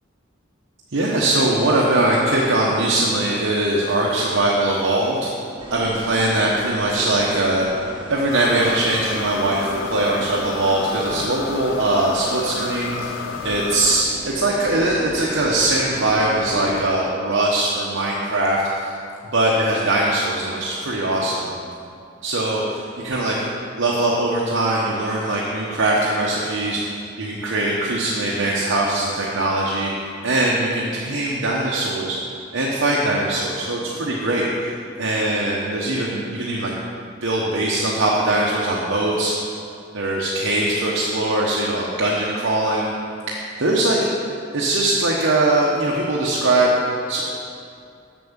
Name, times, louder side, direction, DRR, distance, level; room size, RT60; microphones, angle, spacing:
voice 1, 0.9-5.3 5.7-18.9 19.3-21.5 22.2-23.4 23.8-32.2 32.5-34.7 35.0-36.7 37.2-39.5 39.9-42.9 43.3-44.0 44.5-46.7 47.1-47.2, right 1 dB, 80° right, -4 dB, 1.0 m, -21 dB
sound 1, 5.6-16.8, right 1 dB, 25° right, 0.9 m, -36 dB
sound 2, 8.3-14.1, left 7 dB, 70° left, 0.4 m, -32 dB
7.3 x 6.1 x 7.3 m, 2.5 s
head